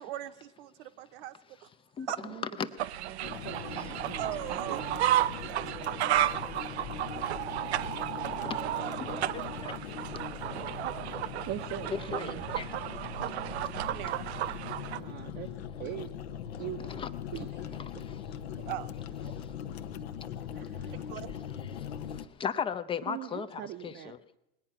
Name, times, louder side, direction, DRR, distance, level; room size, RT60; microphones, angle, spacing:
voice 1, 0.0-1.7 2.1-2.2 4.2-4.8 5.4-6.0 8.7-9.2 13.9-14.2 18.6-18.9 20.9-21.3, right 13 dB, 60° right, 0.9 m, -39 dB
sound 1, 2.8-15.0, right 12 dB, 85° right, 0.5 m, -33 dB
voice 2, 3.0-5.1 11.4-12.5 14.9-15.5 15.8-16.1 16.6-17.0 17.3-17.8 18.6-18.7 20.5-21.0 23.1-24.1, right 13 dB, 35° right, 0.6 m, -42 dB
sound 2, 3.2-22.3, left 9 dB, 75° left, 0.8 m, -41 dB
voice 3, 9.0-9.7 10.7-10.8 11.9-12.8 16.9-17.1 17.9-18.3 19.3-19.5 20.0-20.1 20.8-20.9 21.6-24.2, left 7 dB, 15° left, 0.5 m, -37 dB
20.0 x 8.8 x 5.7 m
hypercardioid pair, 115°, 31 cm